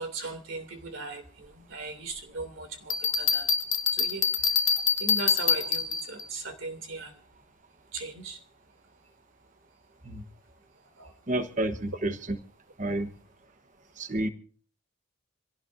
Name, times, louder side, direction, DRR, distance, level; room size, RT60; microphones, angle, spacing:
voice 1, 0.0-3.5 3.9-4.6 5.0-7.2 7.9-8.4 11.0-11.1, right 3 dB, 65° right, 7 dB, 2.7 m, -38 dB
Bell, 2.9-6.2, left 6 dB, 60° left, 1.5 m, -25 dB
voice 2, 11.3-12.1 12.8-13.1 14.0-14.3, right 1 dB, 35° right, 9 dB, 1.1 m, -29 dB
27.0 x 17.0 x 2.6 m, 0.40 s
head